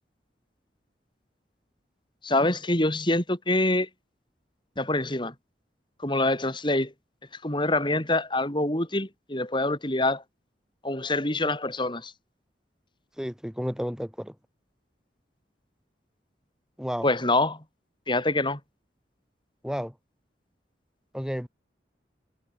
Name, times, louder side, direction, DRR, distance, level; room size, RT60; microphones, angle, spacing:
voice 1, 2.2-3.9 4.8-5.3 6.0-6.9 7.4-10.2 10.8-12.1 17.0-17.6 18.1-18.6, left 2 dB, 25° left, 6.0 m, -25 dB
voice 2, 13.2-14.3 16.8-17.1 19.6-19.9 21.1-21.5, equal, 5° right, 4.9 m, -32 dB
head